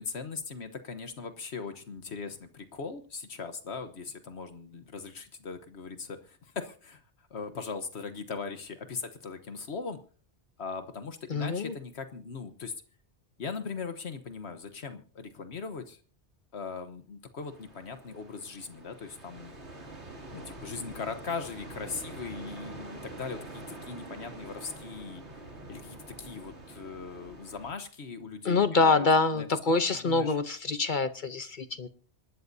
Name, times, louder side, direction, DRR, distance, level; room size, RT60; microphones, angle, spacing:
voice 1, 0.0-7.0 7.3-10.0 10.6-12.7 13.4-16.0 16.5-19.5 20.3-25.2 25.7-29.1 29.3-30.4, left 5 dB, 70° left, 8 dB, 1.4 m, -39 dB
voice 2, 11.3-11.7 28.4-31.9, left 4 dB, 50° left, 11 dB, 0.9 m, -25 dB
sound 1, 17.4-27.7, right 2 dB, 75° right, 3.1 m, -45 dB
26.5 x 12.5 x 2.7 m, 0.41 s
omnidirectional pair, 1.2 m